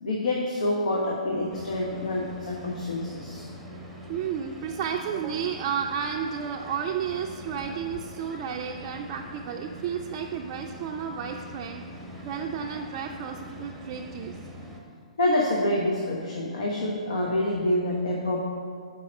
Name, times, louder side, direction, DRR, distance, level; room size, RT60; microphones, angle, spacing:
voice 1, 0.0-3.4 15.2-18.4, left 1 dB, 70° left, -2 dB, 1.1 m, -27 dB
sound 1, 1.5-14.8, equal, ahead, 0.9 m, -43 dB
voice 2, 4.1-11.8 12.2-14.3 17.2-17.3, right 7 dB, 35° right, 1 dB, 0.4 m, -32 dB
5.8 x 4.8 x 6.3 m, 2.2 s
figure-of-eight pair, 125°, 4 cm